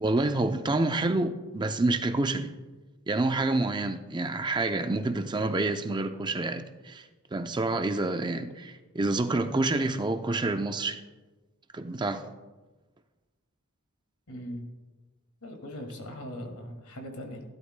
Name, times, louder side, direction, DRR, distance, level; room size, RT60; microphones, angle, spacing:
voice 1, 0.0-2.5 3.1-11.0 11.7-12.3, right 2 dB, 20° right, 0.5 m, -28 dB
voice 2, 14.3-14.6 15.4-17.4, equal, 90° left, 2.1 m, -40 dB
16.0 x 11.5 x 2.2 m
head